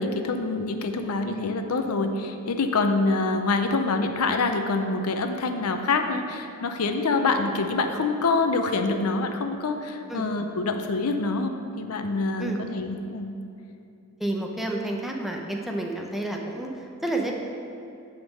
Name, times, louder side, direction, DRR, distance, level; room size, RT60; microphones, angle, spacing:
voice 1, 0.0-13.3, left 3 dB, 80° left, 5 dB, 0.6 m, -26 dB
voice 2, 14.2-17.3, right 1 dB, ahead, 0 dB, 0.7 m, -30 dB
9.2 x 3.7 x 6.3 m, 2.6 s
head